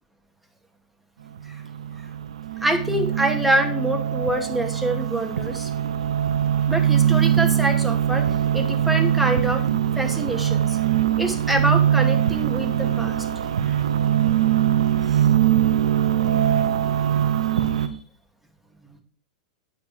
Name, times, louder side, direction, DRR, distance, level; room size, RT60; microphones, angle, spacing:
sound 1, 1.4-17.9, right 10 dB, 75° right, 1.0 m, -22 dB
voice 1, 2.6-5.7 6.7-8.3 8.5-9.6 10.0-10.8 11.2-13.2 15.1-15.2 17.5-17.9 18.9-19.0, right 1 dB, 5° right, 3 dB, 2.3 m, -26 dB
9.1 x 8.0 x 4.9 m, 0.43 s
hypercardioid pair, 100°, 3 cm